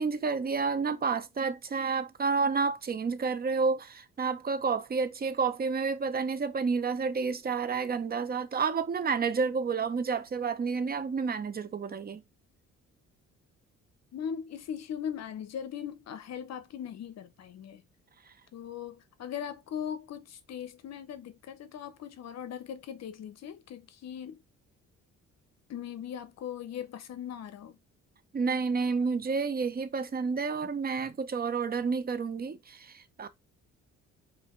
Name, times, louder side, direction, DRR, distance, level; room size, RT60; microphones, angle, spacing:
voice 1, 0.0-12.2 28.3-33.3, right 5 dB, 30° right, 0.6 m, -30 dB
voice 2, 14.1-17.8 18.5-24.4 25.7-27.8, left 8 dB, 60° left, 0.7 m, -39 dB
4.8 x 2.7 x 3.0 m
cardioid pair, 90°, 30 cm